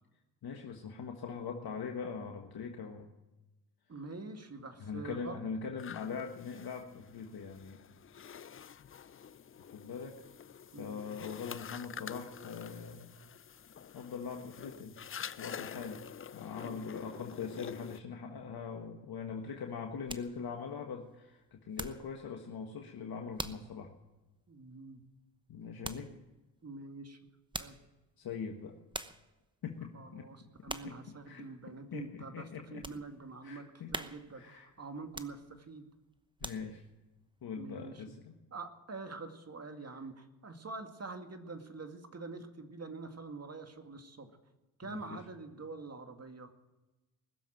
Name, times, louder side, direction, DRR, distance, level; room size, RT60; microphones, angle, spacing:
voice 1, 0.4-3.1 4.8-7.8 9.7-10.2 10.8-13.2 13.9-14.9 15.4-16.0 16.3-23.9 25.5-26.1 28.2-28.7 29.6-30.3 30.7-32.9 33.4-34.0 34.3-34.7 36.4-36.8 37.4-38.4 44.8-45.2, left 6 dB, 55° left, 3 dB, 1.6 m, -42 dB
voice 2, 3.9-5.4 10.7-11.0 16.6-16.8 24.5-25.0 26.1-26.2 26.6-27.2 27.6-27.8 29.9-33.7 33.9-35.9 37.5-38.0 38.5-44.3 44.8-46.5, right 3 dB, 35° right, 6 dB, 2.3 m, -45 dB
sound 1, 5.8-18.0, left 8 dB, 30° left, 0.6 m, -47 dB
sound 2, 19.4-22.2 22.5-22.9 23.4-23.7 24.2-24.3 25.8-26.1 27.3-27.9 28.5-28.6 28.9-29.3 29.8-30.1 30.7-31.0 31.5-31.6 32.2-33.1 33.5-33.6 33.9-34.5 35.0-35.7 36.2-36.9 37.4-37.5, right 2 dB, 10° right, 0.9 m, -43 dB
20.5 x 7.3 x 9.1 m, 1.1 s
supercardioid pair, 55°, 44 cm